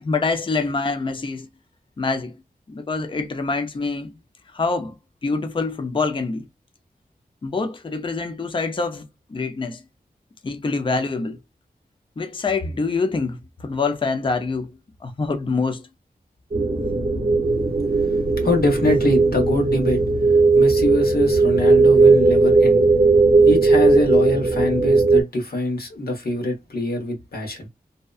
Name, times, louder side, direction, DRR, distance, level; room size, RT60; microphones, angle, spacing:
voice 1, 0.0-1.5 2.0-2.4 2.7-4.1 4.5-5.0 5.2-6.5 7.4-9.8 10.4-11.4 12.2-14.7 15.0-15.9, left 4 dB, 30° left, 0.5 m, -25 dB
sound 1, 16.5-25.2, right 3 dB, 45° right, 0.6 m, -17 dB
voice 2, 18.0-20.0 20.5-22.8 23.4-27.7, left 1 dB, 75° left, 1.1 m, -24 dB
2.7 x 2.1 x 2.3 m
wide cardioid pair, 75°, 16 cm